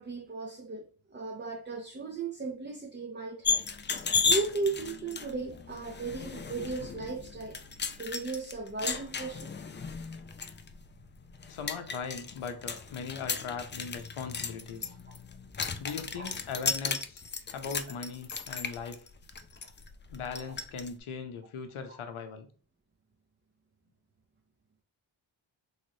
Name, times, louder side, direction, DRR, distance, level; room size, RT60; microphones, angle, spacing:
voice 1, 0.0-3.6 4.3-7.6 8.0-9.6 16.1-16.3 21.9-22.0, right 3 dB, 20° right, 0.6 m, -36 dB
sound 1, 3.4-20.9, left 5 dB, 25° left, 0.3 m, -35 dB
voice 2, 11.5-14.9 15.8-17.2 17.5-19.1 20.1-22.5, left 5 dB, 75° left, 0.7 m, -39 dB
3.1 x 3.0 x 2.7 m
cardioid pair, 55°, 50 cm